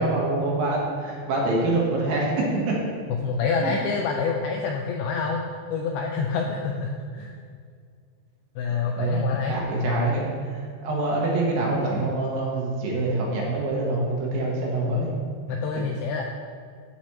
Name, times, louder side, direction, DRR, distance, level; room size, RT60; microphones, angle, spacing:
voice 1, 0.0-2.8 3.6-3.8 9.0-15.1, right 2 dB, 70° right, -3 dB, 2.5 m, -25 dB
voice 2, 3.2-5.4 5.7-7.3 8.6-10.0 14.8-15.0 15.5-16.2, left 5 dB, 85° left, 1 dB, 2.2 m, -27 dB
14.5 x 6.0 x 2.9 m, 2.1 s
omnidirectional pair, 5.0 m